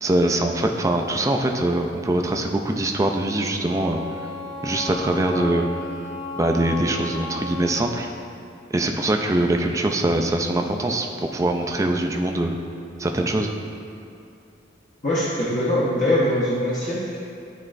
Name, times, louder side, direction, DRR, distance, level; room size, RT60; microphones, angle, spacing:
voice 1, 0.0-4.0 4.6-5.7 6.4-8.1 8.7-12.6 13.0-13.5, right 1 dB, 15° right, 3 dB, 0.3 m, -23 dB
Wind instrument woodwind instrument, 3.6-7.9, left 1 dB, 70° left, 0.8 m, -34 dB
voice 2, 15.0-17.2, left 1 dB, 45° left, -9 dB, 0.9 m, -22 dB
9.9 x 4.2 x 2.5 m, 2.6 s
head